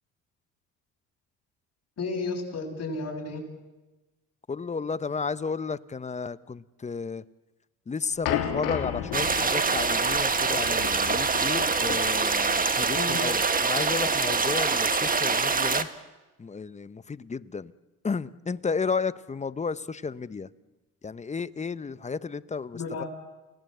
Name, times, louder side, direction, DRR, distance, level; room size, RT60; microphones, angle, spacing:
voice 1, 2.0-3.4 12.9-13.3 22.7-23.1, left 3 dB, 50° left, 1 dB, 7.7 m, -32 dB
voice 2, 4.5-7.2 7.9-15.9 16.4-17.7 18.0-20.5 21.0-22.8, left 5 dB, 20° left, 16 dB, 0.8 m, -33 dB
sound 1, 8.2-13.7, left 10 dB, 80° left, 3.0 m, -34 dB
sound 2, 9.1-15.8, right 4 dB, 25° right, 1.6 m, -25 dB
29.5 x 18.5 x 7.9 m, 1.1 s
supercardioid pair, 80°, 33 cm